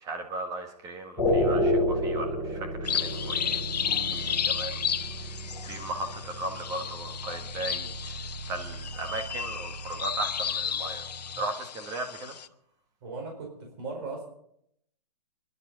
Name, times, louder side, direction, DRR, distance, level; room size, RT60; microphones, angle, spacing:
voice 1, 0.0-4.8 5.6-8.2 8.5-11.1 11.4-12.4, right 2 dB, 15° right, 5 dB, 1.7 m, -37 dB
sound 1, 1.2-11.4, left 1 dB, ahead, 5.4 m, -32 dB
sound 2, 2.8-12.5, left 8 dB, 85° left, 0.9 m, -33 dB
voice 2, 13.0-14.2, right 3 dB, 40° right, 1 dB, 4.6 m, -37 dB
28.0 x 11.5 x 4.0 m, 0.71 s
hypercardioid pair, 160°, 21 cm